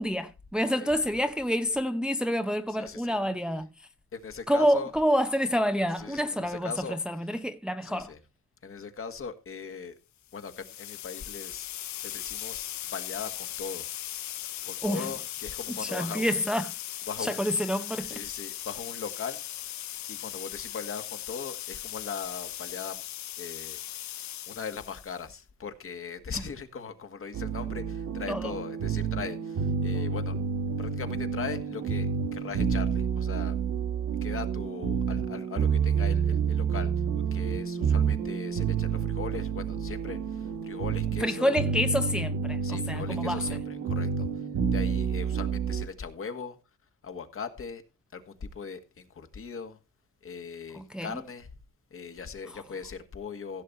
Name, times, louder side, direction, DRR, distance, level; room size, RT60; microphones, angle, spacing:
voice 1, 0.0-3.9 4.5-8.1 14.8-15.1 15.7-16.7 17.2-18.2 28.3-28.5 41.2-43.4 50.7-51.2 52.5-52.6, equal, 5° right, 0.7 m, -28 dB
voice 2, 2.7-3.2 4.1-4.9 6.0-7.0 7.8-8.2 8.6-9.9 10.3-11.7 12.0-13.9 14.6-16.3 17.1-17.4 18.0-19.4 20.1-23.0 23.4-23.8 24.5-30.3 30.8-32.1 32.3-33.6 34.2-36.9 37.3-40.2 40.6-41.6 42.6-44.3 44.7-46.6 47.0-47.8 48.1-49.8 50.2-51.5 51.9-53.6, left 6 dB, 45° left, 1.8 m, -39 dB
sound 1, 10.3-25.3, left 13 dB, 65° left, 0.7 m, -38 dB
sound 2, 27.3-45.9, right 6 dB, 70° right, 1.8 m, -29 dB
16.0 x 6.9 x 4.2 m
cardioid pair, 90°, 30 cm